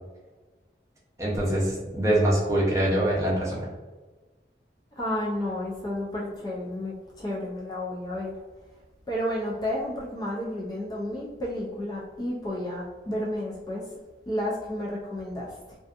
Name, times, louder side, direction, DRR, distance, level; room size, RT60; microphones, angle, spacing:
voice 1, 1.2-3.6, right 1 dB, 20° right, -5 dB, 0.6 m, -24 dB
voice 2, 5.0-8.3 9.1-13.8 14.3-15.5, left 1 dB, 20° left, -4 dB, 0.3 m, -31 dB
2.5 x 2.4 x 2.3 m, 1.3 s
head